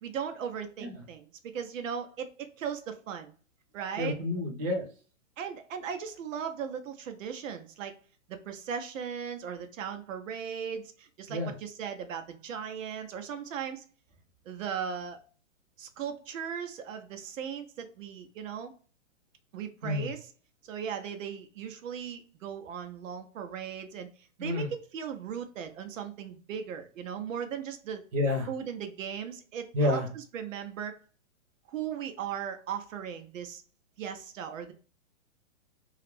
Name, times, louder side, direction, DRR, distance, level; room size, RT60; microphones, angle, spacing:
voice 1, 0.0-3.3 3.7-4.2 5.4-7.9 8.3-13.9 14.5-15.2 15.8-18.7 19.5-20.3 20.6-24.1 24.4-28.0 28.5-31.0 31.7-33.6 34.0-34.7, right 7 dB, 85° right, 0.6 m, -37 dB
voice 2, 4.0-4.8 11.3-11.5 19.8-20.1 24.4-24.7 28.1-28.5 29.7-30.1, left 1 dB, 30° right, 0.6 m, -29 dB
2.3 x 2.0 x 3.0 m
hypercardioid pair, 160°, 38 cm